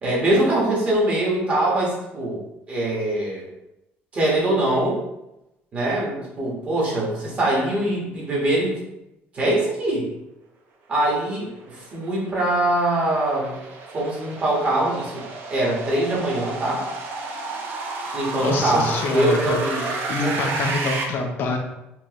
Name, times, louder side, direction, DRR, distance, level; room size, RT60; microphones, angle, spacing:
voice 1, 0.0-2.4 2.7-3.5 4.1-5.0 5.7-8.8 9.3-10.1 10.9-13.5 13.9-15.2 15.5-16.9 18.1-19.9 20.2-20.5, right 1 dB, 30° right, -4 dB, 1.3 m, -23 dB
sound 1, 11.5-21.0, right 3 dB, 50° right, 0.7 m, -32 dB
voice 2, 18.3-21.6, left 3 dB, 50° left, 3 dB, 0.5 m, -26 dB
4.4 x 2.6 x 3.1 m, 0.90 s
cardioid pair, 150°, 5 cm